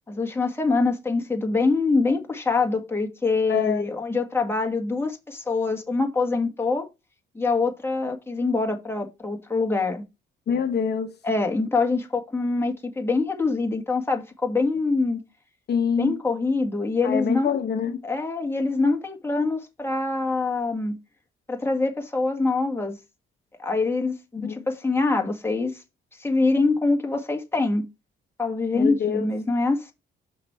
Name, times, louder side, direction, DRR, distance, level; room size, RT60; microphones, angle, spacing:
voice 1, 0.1-6.9 7.4-10.0 11.2-15.2 16.0-17.6 18.0-21.0 21.5-23.0 23.6-25.8 26.2-27.9 28.4-29.9, left 3 dB, 10° left, 1.8 m, -24 dB
voice 2, 3.5-3.8 10.5-11.2 15.7-16.2 17.0-18.0 24.4-24.7 28.7-29.3, left 7 dB, 55° left, 1.0 m, -25 dB
5.8 x 4.6 x 4.4 m
cardioid pair, 90°, 20 cm